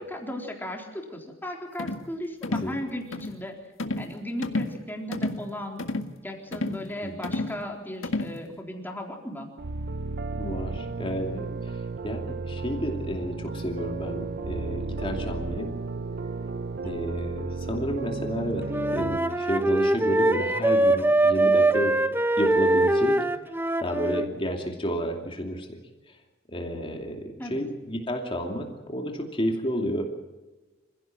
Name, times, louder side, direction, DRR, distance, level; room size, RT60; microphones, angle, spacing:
voice 1, 0.0-3.6 4.0-5.8 6.2-9.5 27.4-27.6, left 1 dB, 10° left, 1 dB, 3.9 m, -36 dB
sound 1, 1.8-2.1 2.4-2.7 3.1-3.4 3.8-4.1 4.4-4.8 5.1-5.4 5.8-6.1 6.5-6.8 7.2-7.6 8.0-8.4, left 2 dB, 70° left, 1.9 m, -30 dB
voice 2, 7.0-7.3 10.4-15.7 16.8-23.2 23.8-25.8 26.1-26.2 26.5-30.0, equal, 25° left, 1 dB, 2.7 m, -31 dB
sound 2, 9.6-19.2, right 3 dB, 50° right, 0.7 m, -33 dB
Wind instrument woodwind instrument, 18.7-24.3, right 2 dB, 10° right, 1.0 m, -23 dB
26.5 x 16.5 x 7.7 m, 1.2 s
head